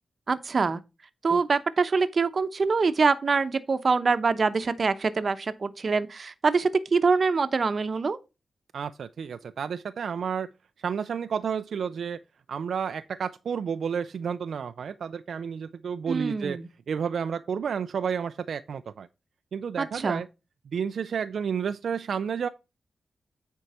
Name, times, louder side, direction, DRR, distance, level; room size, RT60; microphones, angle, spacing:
voice 1, 0.3-0.8 1.2-8.2 16.1-16.7 19.8-20.2, right 4 dB, 50° right, 0.8 m, -24 dB
voice 2, 8.7-10.5 10.8-12.2 12.5-16.6 16.9-19.1 19.5-20.3 20.7-22.5, right 7 dB, 80° right, 0.4 m, -31 dB
9.4 x 4.6 x 4.2 m
cardioid pair, 80°, 0 cm